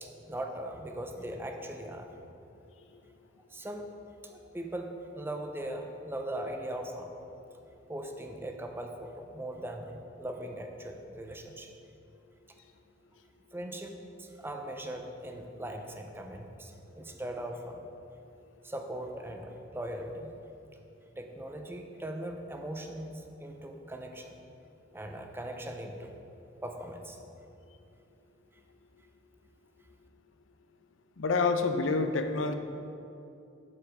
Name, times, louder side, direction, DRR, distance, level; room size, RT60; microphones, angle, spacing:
voice 1, 0.0-2.1 3.5-3.9 4.2-4.9 5.2-7.1 7.9-11.7 13.5-17.9 18.6-20.3 21.2-24.4 24.9-26.1 26.6-27.2, right 1 dB, 10° right, 4 dB, 0.6 m, -40 dB
voice 2, 31.2-32.6, left 4 dB, 85° left, 7 dB, 0.6 m, -27 dB
7.6 x 7.0 x 4.8 m, 2.7 s
head